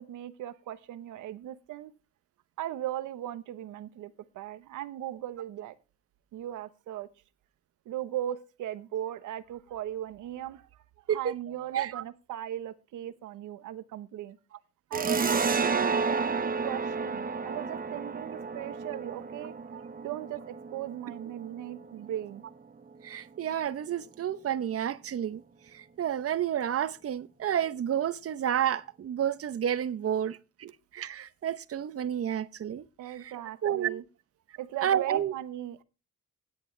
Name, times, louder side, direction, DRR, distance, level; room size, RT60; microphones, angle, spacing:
voice 1, 0.0-1.9 2.6-5.7 6.3-7.1 7.8-10.8 11.1-14.4 14.9-19.5 20.0-22.4 33.0-34.0 34.6-35.8, right 12 dB, 85° right, 1.1 m, -38 dB
voice 2, 11.7-12.0 19.7-19.8 23.0-25.4 25.7-32.8 33.2-33.3 33.6-34.0 34.8-35.3, right 9 dB, 50° right, 0.8 m, -30 dB
sound 1, 14.9-22.1, right 4 dB, 30° right, 1.1 m, -31 dB
16.5 x 9.8 x 3.3 m
cardioid pair, 90°, 30 cm